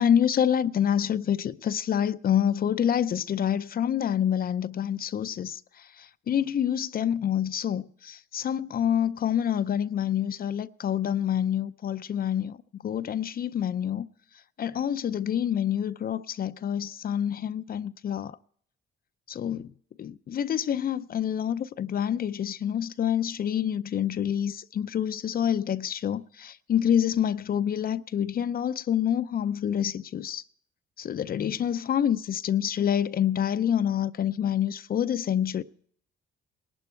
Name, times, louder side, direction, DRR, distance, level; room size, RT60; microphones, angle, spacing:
voice 1, 0.0-5.6 6.0-12.6 12.8-14.1 14.6-18.4 19.3-19.7 20.0-30.4 31.0-35.6, left 9 dB, 50° left, 0.5 m, -27 dB
19.5 x 11.5 x 4.4 m
cardioid pair, 90°, 20 cm